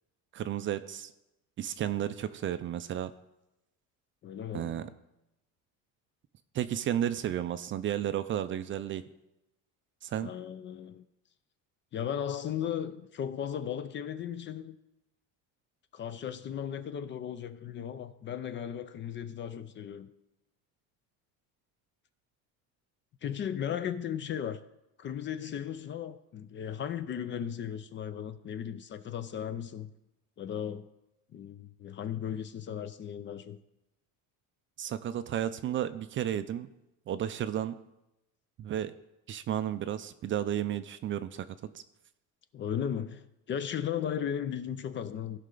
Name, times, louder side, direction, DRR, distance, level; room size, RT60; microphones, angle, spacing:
voice 1, 0.3-1.1 1.6-3.1 4.5-4.9 6.5-9.0 10.0-10.3 34.8-36.7 37.1-37.8 38.6-38.9 39.3-41.5 41.7-41.8, right 11 dB, 35° right, 0.4 m, -32 dB
voice 2, 4.2-4.8 10.2-11.0 11.9-14.8 15.9-20.1 23.2-24.6 25.0-29.9 30.4-30.9 31.3-33.6 42.5-45.4, left 9 dB, 35° left, 0.4 m, -36 dB
16.0 x 5.5 x 3.8 m
cardioid pair, 145°, 36 cm